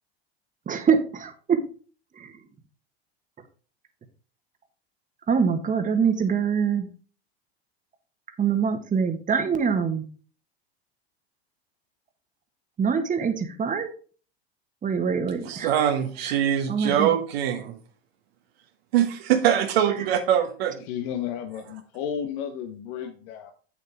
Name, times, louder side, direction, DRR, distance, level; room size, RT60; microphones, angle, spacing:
voice 1, 0.7-1.6 2.2-2.3 5.3-6.9 8.4-10.0 12.8-13.9 14.8-15.7 16.7-17.1, right 6 dB, 25° right, 7 dB, 1.4 m, -24 dB
voice 2, 15.4-17.8 18.9-20.8, right 10 dB, 70° right, 4 dB, 1.3 m, -23 dB
voice 3, 20.8-23.5, left 8 dB, 60° left, 6 dB, 1.1 m, -33 dB
8.2 x 7.2 x 3.5 m, 0.40 s
hypercardioid pair, 90°, 32 cm